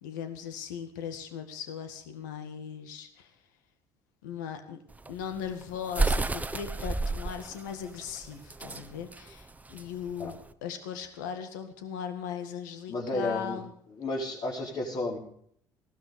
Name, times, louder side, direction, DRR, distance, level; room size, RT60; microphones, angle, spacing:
voice 1, 0.0-3.3 4.2-4.8 5.1-13.7, left 7 dB, 85° left, 7 dB, 1.8 m, -38 dB
sound 1, 4.9-10.5, right 3 dB, 15° right, 1.0 m, -32 dB
voice 2, 12.9-13.6 13.9-15.2, left 2 dB, 50° left, -5 dB, 5.0 m, -32 dB
16.5 x 12.5 x 5.1 m, 0.63 s
hypercardioid pair, 65°, 10 cm